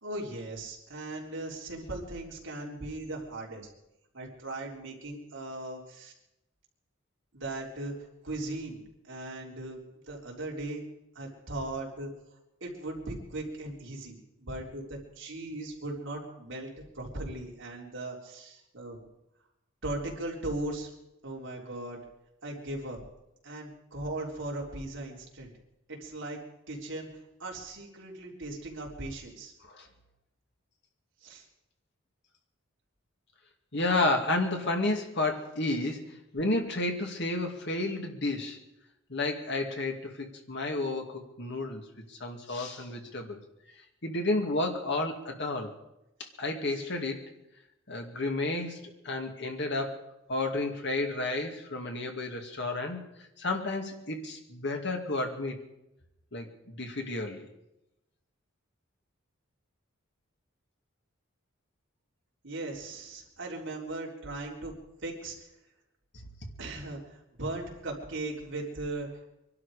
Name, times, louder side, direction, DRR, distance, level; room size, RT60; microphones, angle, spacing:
voice 1, 0.0-3.7 4.1-6.1 7.3-8.8 9.0-9.8 10.1-10.9 11.2-12.1 12.6-19.0 19.8-20.9 21.2-22.0 22.4-23.0 23.4-25.5 25.9-26.4 26.7-29.5 31.2-31.4 46.7-46.8 62.4-64.7 65.0-65.3 66.6-69.2, right 2 dB, 60° right, -2 dB, 3.8 m, -38 dB
voice 2, 33.7-38.6 39.1-41.8 42.1-43.4 44.0-45.7 46.2-47.2 47.9-50.0 50.3-53.0 53.4-55.6 56.3-57.5, left 2 dB, 55° left, 3 dB, 2.3 m, -31 dB
23.5 x 12.0 x 5.0 m, 0.90 s
head